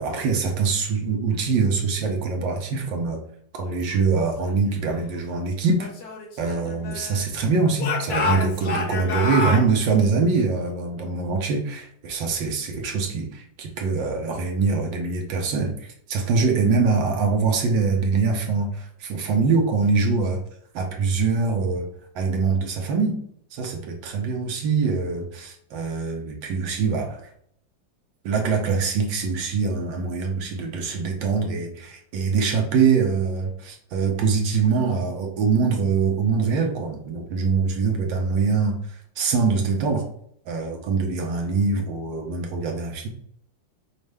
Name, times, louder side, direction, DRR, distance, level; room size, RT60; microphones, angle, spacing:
voice 1, 0.0-3.2 3.5-5.9 6.4-20.4 20.7-21.9 22.1-23.2 23.5-27.2 28.2-38.8 39.2-40.0 40.5-43.1, right 4 dB, 75° right, 2 dB, 1.4 m, -23 dB
Speech / Shout, 5.8-7.3 7.8-9.7, left 3 dB, 55° left, 1.3 m, -28 dB
5.3 x 2.4 x 3.3 m, 0.67 s
omnidirectional pair, 2.2 m